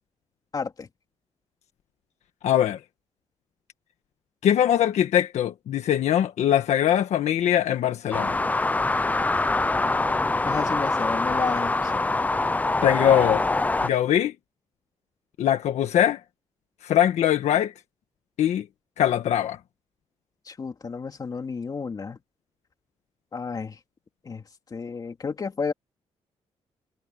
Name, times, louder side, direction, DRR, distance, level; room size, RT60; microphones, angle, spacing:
voice 1, 0.5-0.9 10.4-12.1 20.5-22.2 23.3-23.8 24.2-24.4 24.7-25.7, left 5 dB, 35° left, 2.6 m, -31 dB
voice 2, 2.4-2.8 4.4-8.3 12.8-13.4 13.8-14.3 15.4-16.2 16.8-17.7 18.4-18.6 19.0-19.6, left 10 dB, 90° left, 1.4 m, -22 dB
sound 1, 8.1-13.9, left 2 dB, 15° left, 0.6 m, -24 dB
wide cardioid pair, 140°, 11 cm